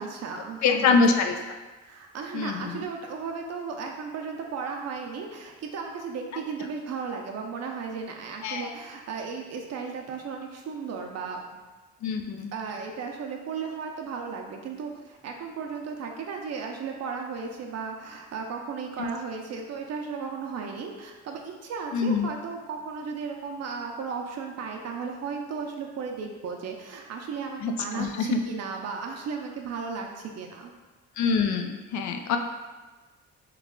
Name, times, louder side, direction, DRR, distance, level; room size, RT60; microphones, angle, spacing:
voice 1, 0.0-1.3 1.8-11.4 12.5-30.7, right 5 dB, 60° right, 2 dB, 0.5 m, -35 dB
voice 2, 0.6-1.4 2.3-2.8 8.4-8.7 12.0-12.5 19.0-19.1 21.9-22.3 27.6-28.4 31.2-32.4, left 5 dB, 70° left, 5 dB, 0.5 m, -25 dB
3.1 x 2.4 x 3.6 m, 1.2 s
cardioid pair, 90°, 30 cm